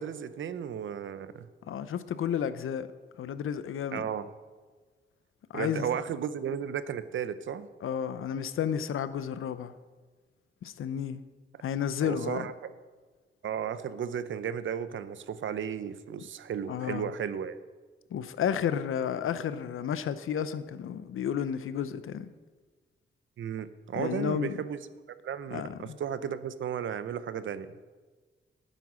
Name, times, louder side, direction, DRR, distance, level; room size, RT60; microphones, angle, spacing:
voice 1, 0.0-1.5 3.9-4.3 5.5-7.7 12.0-12.5 13.4-17.6 23.4-24.8 25.2-27.7, right 8 dB, 70° right, 0.7 m, -34 dB
voice 2, 1.7-2.9 3.2-4.0 5.5-5.9 7.8-9.7 10.6-11.2 11.6-12.5 16.7-17.1 18.1-22.3 23.9-24.6 25.5-26.0, left 8 dB, 90° left, 0.7 m, -32 dB
12.0 x 9.2 x 6.2 m
wide cardioid pair, 155°, 21 cm